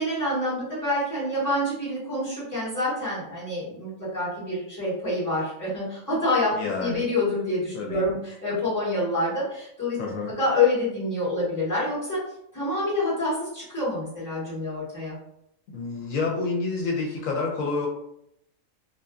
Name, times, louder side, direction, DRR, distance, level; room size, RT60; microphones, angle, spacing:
voice 1, 0.0-6.5 6.8-10.0 10.4-12.2 12.5-15.2, left 2 dB, 15° left, -9 dB, 1.3 m, -27 dB
voice 2, 6.5-7.0 7.7-8.1 10.0-10.3 15.7-17.9, left 3 dB, 80° left, -1 dB, 1.0 m, -28 dB
2.6 x 2.4 x 2.3 m, 0.77 s
omnidirectional pair, 1.4 m